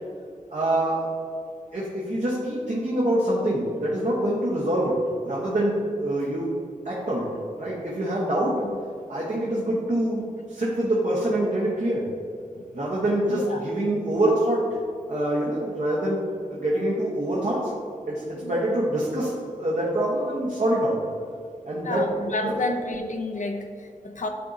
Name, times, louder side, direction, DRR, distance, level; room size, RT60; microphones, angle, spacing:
voice 1, 0.5-1.0 1.7-4.9 5.2-6.5 6.8-7.3 7.6-8.6 9.1-12.1 12.7-14.6 15.1-17.7 18.0-21.0 21.6-22.0 22.4-22.5, right 1 dB, 60° right, -6 dB, 1.2 m, -25 dB
voice 2, 13.3-13.6 18.4-18.6 21.8-24.3, left 2 dB, 65° left, 4 dB, 0.6 m, -31 dB
11.0 x 3.8 x 2.8 m, 2.3 s
wide cardioid pair, 70°, 14 cm